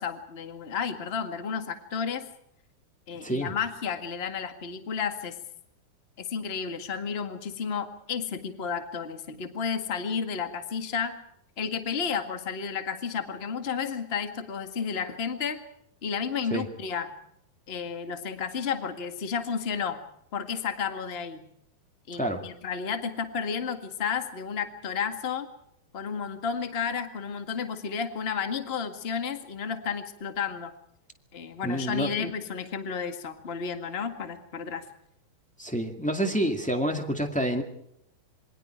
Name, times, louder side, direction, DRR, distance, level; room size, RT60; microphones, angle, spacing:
voice 1, 0.0-2.3 3.1-5.4 6.2-11.2 11.6-15.6 16.0-17.1 17.7-20.0 20.3-21.4 22.1-25.5 25.9-30.7 31.3-34.8, left 6 dB, 45° left, 7 dB, 0.7 m, -32 dB
voice 2, 31.6-32.3 35.6-37.6, equal, 10° left, 3 dB, 0.5 m, -28 dB
27.5 x 23.5 x 4.5 m, 0.73 s
omnidirectional pair, 4.5 m